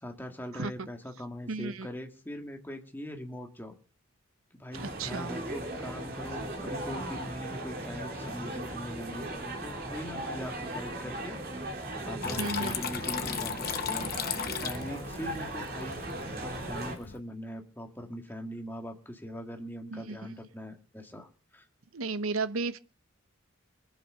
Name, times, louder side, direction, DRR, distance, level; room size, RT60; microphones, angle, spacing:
voice 1, 0.0-3.7 4.5-11.4 12.1-14.1 14.6-16.0 16.3-21.6, equal, 10° left, 1.8 m, -41 dB
voice 2, 1.5-1.9 5.0-5.3 12.4-12.8 19.9-20.2 21.9-22.8, right 3 dB, 80° right, 0.9 m, -33 dB
sound 1, 4.7-17.0, right 1 dB, 45° right, 3.2 m, -38 dB
Water tap faucet / Trickle dribble, 12.2-17.2, left 7 dB, 45° left, 1.0 m, -36 dB
22.0 x 7.7 x 6.7 m
head